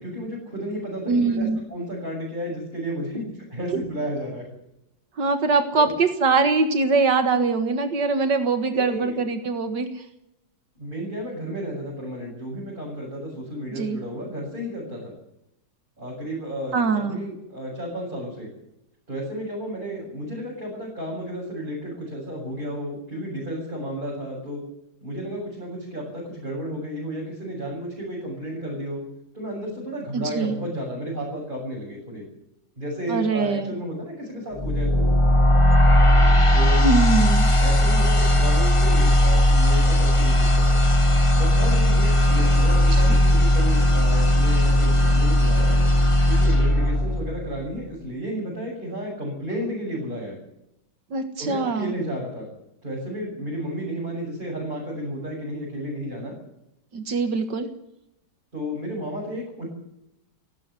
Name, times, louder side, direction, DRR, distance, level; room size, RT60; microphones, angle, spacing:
voice 1, 0.0-4.5 5.8-5.9 8.7-9.2 10.8-15.1 16.0-18.5 19.1-24.6 25.0-29.0 29.3-32.3 32.8-35.1 36.5-36.8 37.6-40.8 41.4-45.8 46.3-50.4 51.4-52.5 52.8-56.3 58.5-59.7, equal, 25° right, -4 dB, 7.5 m, -32 dB
voice 2, 1.1-1.6 5.2-10.0 13.8-14.0 16.7-17.2 30.1-30.5 33.1-33.7 36.8-37.5 51.1-51.9 56.9-57.7, right 4 dB, 75° right, 8 dB, 2.2 m, -22 dB
sound 1, 34.6-47.7, left 1 dB, 20° left, 1.2 m, -18 dB
17.5 x 16.0 x 9.7 m, 0.83 s
omnidirectional pair, 1.9 m